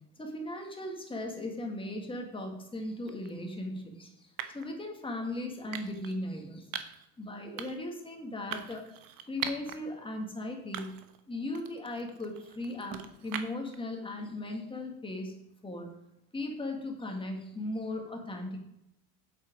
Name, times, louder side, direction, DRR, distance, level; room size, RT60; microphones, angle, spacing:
voice 1, 0.2-6.8 7.2-8.8 9.3-11.0 11.3-15.4 15.6-15.9 16.3-18.6, left 1 dB, 10° left, 2 dB, 1.9 m, -37 dB
sound 1, 3.1-3.3 4.4-4.7 5.7-6.2 6.7-7.1 7.6-7.9 8.5-9.8 10.2-10.3 10.7-11.2 11.6-13.8, right 10 dB, 45° right, 1.1 m, -40 dB
8.0 x 7.9 x 5.1 m, 0.81 s
supercardioid pair, 135°, 46 cm